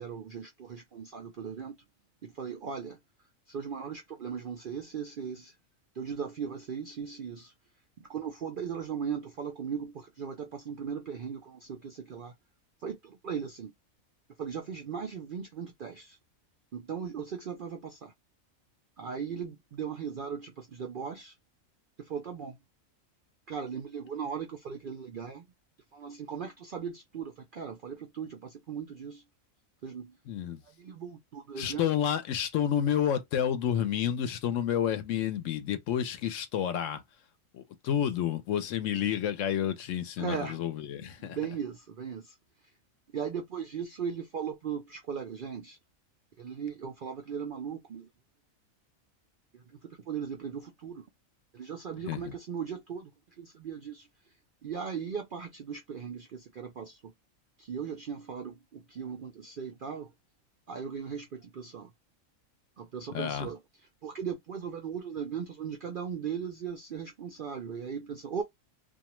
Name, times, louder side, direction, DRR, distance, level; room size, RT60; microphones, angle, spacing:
voice 1, 0.0-1.8 2.2-3.0 3.5-5.6 5.9-7.5 8.0-12.3 12.8-13.7 14.4-16.2 16.7-18.1 19.0-21.4 22.0-22.6 23.5-25.5 25.9-29.2 29.8-30.2 30.6-31.9 40.2-40.6 41.2-42.7 43.1-45.8 46.4-48.1 49.5-51.1 51.5-53.1 53.4-54.3 54.6-57.1 57.6-60.1 60.7-61.9 62.8-63.6 64.0-68.4, right 7 dB, 65° right, 0.5 m, -38 dB
voice 2, 30.3-30.6 31.6-37.0 37.5-41.4 52.1-52.3 63.1-63.5, left 9 dB, 70° left, 0.9 m, -30 dB
2.4 x 2.3 x 2.9 m
omnidirectional pair, 1.4 m